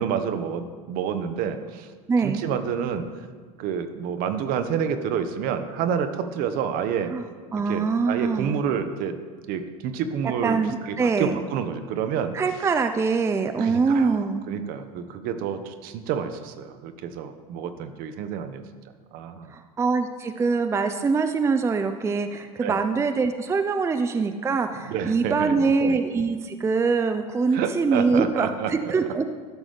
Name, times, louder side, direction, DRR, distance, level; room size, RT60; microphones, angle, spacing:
voice 1, 0.0-1.9 2.2-3.0 3.6-7.1 7.7-9.2 9.5-10.6 10.8-12.3 13.6-14.2 14.5-18.6 19.1-19.5 22.6-22.8 24.9-25.5 27.5-28.9, right 7 dB, 50° right, 9 dB, 0.8 m, -28 dB
voice 2, 2.1-2.4 7.1-7.2 7.5-8.6 10.4-11.4 12.3-14.4 19.5-29.3, right 4 dB, 15° right, 8 dB, 0.4 m, -24 dB
12.5 x 6.1 x 3.4 m, 1.5 s
figure-of-eight pair, 75°, 19 cm